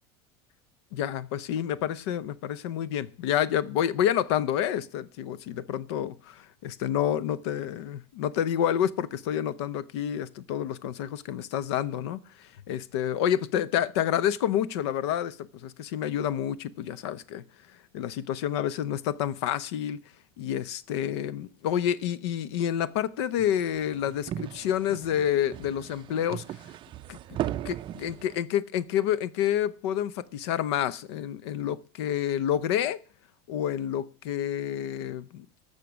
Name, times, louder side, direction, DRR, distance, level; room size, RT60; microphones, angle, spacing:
voice 1, 0.9-20.0 20.4-26.6 27.1-27.2 27.6-33.0 33.5-35.5, left 10 dB, 85° left, 0.8 m, -29 dB
sound 1, 23.4-28.4, right 12 dB, 40° right, 0.5 m, -37 dB
19.5 x 6.7 x 6.2 m
supercardioid pair, 130°, 13 cm